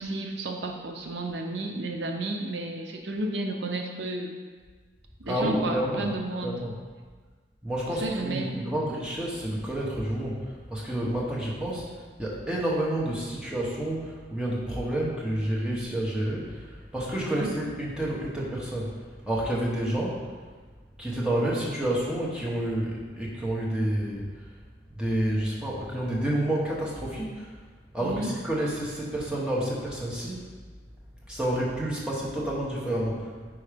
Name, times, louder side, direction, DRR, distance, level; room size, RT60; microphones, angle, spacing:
voice 1, 0.0-4.4 5.2-6.5 7.9-8.6 17.2-17.5 28.0-28.3, right 2 dB, 75° right, 3 dB, 0.6 m, -32 dB
voice 2, 5.3-6.1 6.4-6.7 7.6-11.9 12.2-18.9 19.3-20.2 21.0-24.3 24.9-27.5 27.9-30.5 31.3-33.3, right 1 dB, 5° right, -5 dB, 0.9 m, -29 dB
4.7 x 4.3 x 5.0 m, 1.5 s
head